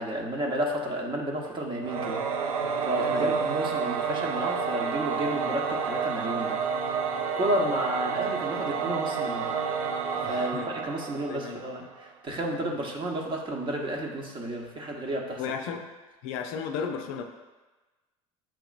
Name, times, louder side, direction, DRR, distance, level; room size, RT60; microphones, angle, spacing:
voice 1, 0.0-2.2 2.8-6.8 7.4-9.5 10.1-15.4, right 1 dB, 30° right, -1 dB, 0.9 m, -31 dB
Singing / Musical instrument, 1.8-11.9, right 6 dB, 85° right, 0.4 m, -30 dB
voice 2, 10.2-10.7 11.3-11.6 15.4-15.9 16.2-17.2, left 6 dB, 65° left, 5 dB, 0.5 m, -34 dB
7.3 x 2.9 x 2.4 m, 1.2 s
hypercardioid pair, 75°, 18 cm